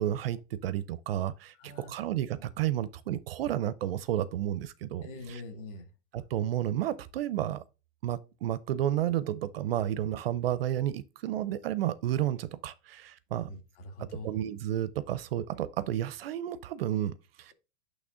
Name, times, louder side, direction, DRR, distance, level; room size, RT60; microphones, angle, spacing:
voice 1, 0.0-5.4 6.1-7.6 8.0-13.5 14.0-17.5, right 12 dB, 50° right, 0.5 m, -31 dB
voice 2, 1.6-2.0 5.0-5.9 13.5-14.4, left 2 dB, 45° left, 1.6 m, -44 dB
8.5 x 3.2 x 3.7 m
supercardioid pair, 165°, 39 cm